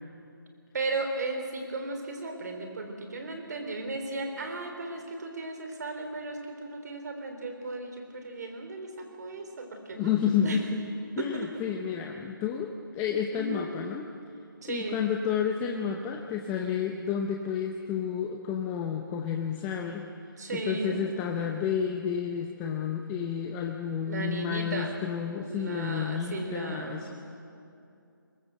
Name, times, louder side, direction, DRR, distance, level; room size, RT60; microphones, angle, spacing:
voice 1, 0.7-10.1 10.4-10.6 11.2-11.5 13.3-13.7 14.6-15.0 20.4-21.0 24.0-24.9 25.4-27.1, right 2 dB, 50° right, 5 dB, 3.9 m, -35 dB
voice 2, 9.9-10.8 11.2-14.1 14.7-20.1 20.5-27.1, left 7 dB, 15° left, 3 dB, 0.7 m, -31 dB
22.5 x 19.5 x 7.8 m, 2.6 s
figure-of-eight pair, 155°, 12 cm